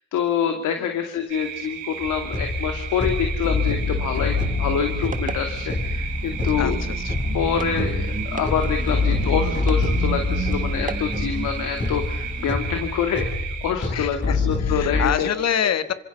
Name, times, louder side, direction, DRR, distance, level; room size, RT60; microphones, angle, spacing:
voice 1, 0.1-6.8 7.3-15.3, left 8 dB, 85° left, 5 dB, 2.5 m, -26 dB
sound 1, 1.3-13.7, right 10 dB, 85° right, 3.6 m, -35 dB
sound 2, 2.0-15.0, left 3 dB, 40° left, 7.8 m, -26 dB
sound 3, 4.7-12.5, right 4 dB, 25° right, 1.5 m, -34 dB
voice 2, 6.6-7.1 8.8-9.0 13.9-15.9, left 8 dB, 60° left, 11 dB, 1.7 m, -26 dB
28.5 x 25.0 x 5.5 m, 0.81 s
cardioid pair, 90°, 30 cm